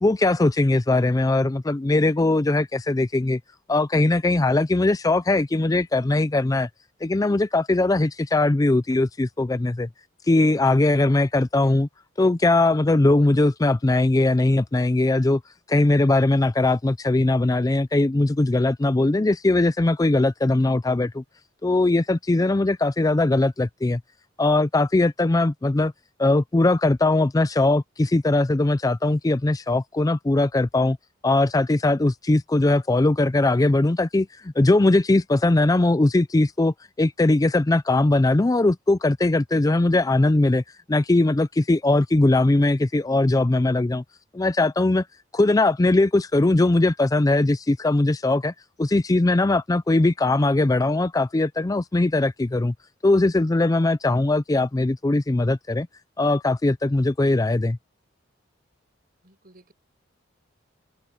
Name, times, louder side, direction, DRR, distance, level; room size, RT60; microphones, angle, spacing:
voice 1, 0.0-3.4 3.7-6.7 7.0-9.9 10.3-11.9 12.2-15.4 15.7-21.2 21.6-24.0 24.4-25.9 26.2-31.0 31.2-40.6 40.9-44.0 44.3-45.0 45.3-48.5 48.8-52.7 53.0-55.9 56.2-57.8, left 2 dB, 20° left, 0.4 m, -20 dB
voice 2, 42.4-42.8 59.2-59.7, right 1 dB, 50° right, 6.5 m, -55 dB
head